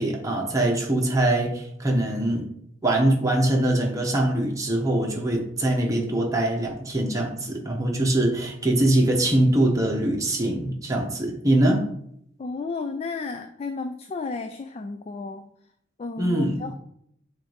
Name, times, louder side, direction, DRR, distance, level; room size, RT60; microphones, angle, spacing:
voice 1, 0.0-2.4 2.8-11.9 16.2-16.6, right 1 dB, 15° right, 0 dB, 1.1 m, -23 dB
voice 2, 12.4-15.5 16.0-16.7, left 4 dB, 30° left, 6 dB, 0.3 m, -33 dB
7.4 x 2.7 x 5.0 m, 0.71 s
head